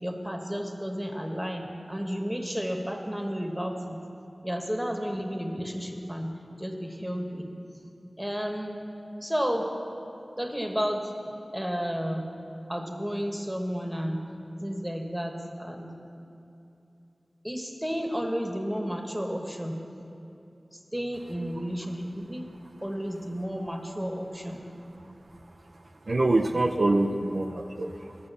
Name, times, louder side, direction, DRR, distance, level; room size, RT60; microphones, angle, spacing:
voice 1, 0.0-4.0 4.4-6.3 6.6-7.5 8.2-8.8 9.2-9.7 10.4-11.1 11.5-12.3 12.7-14.2 14.6-15.9 17.4-19.8 20.7-22.4 22.8-24.6, equal, 5° right, 3 dB, 1.3 m, -32 dB
voice 2, 26.1-28.2, right 2 dB, 70° right, 3 dB, 0.5 m, -25 dB
14.0 x 6.8 x 6.9 m, 2.7 s
wide cardioid pair, 55°, 0 cm